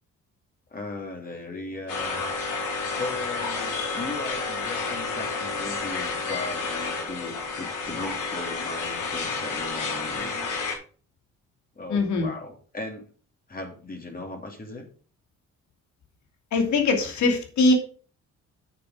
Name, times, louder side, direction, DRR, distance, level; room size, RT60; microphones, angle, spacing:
voice 1, 0.7-2.2 2.9-10.3 11.8-13.1 13.5-14.8, left 2 dB, 30° left, 1 dB, 3.1 m, -37 dB
sound 1, 1.9-10.7, left 4 dB, 90° left, 4.0 m, -30 dB
voice 2, 11.9-12.3 16.5-17.7, left 3 dB, 70° left, 4 dB, 3.0 m, -22 dB
8.9 x 7.2 x 5.1 m, 0.40 s
cardioid pair, 90°, 30 cm